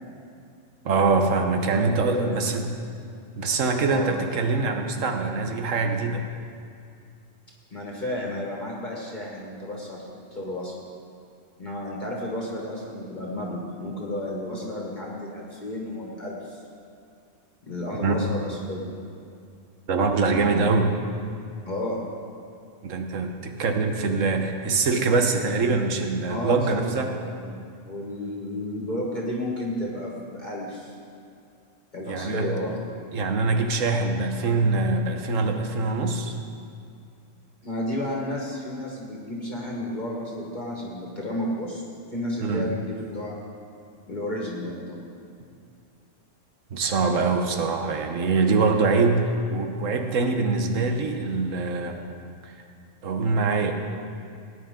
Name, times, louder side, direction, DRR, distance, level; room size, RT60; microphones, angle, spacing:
voice 1, 0.8-2.6 3.4-6.2 18.0-18.3 19.9-20.9 22.8-27.2 32.1-32.5 33.1-36.4 42.4-42.7 46.7-52.0 52.4-52.5 53.0-53.7, right 3 dB, 90° right, 5 dB, 1.4 m, -24 dB
voice 2, 1.7-2.3 3.9-4.1 7.7-10.0 10.3-10.7 11.6-16.6 17.7-18.9 21.6-22.0 26.3-26.9 27.4-27.5 27.8-30.9 31.9-32.8 37.6-41.8 42.1-43.4 44.1-45.0, left 1 dB, 40° left, -3 dB, 1.7 m, -32 dB
18.5 x 9.6 x 3.8 m, 2.4 s
omnidirectional pair, 1.3 m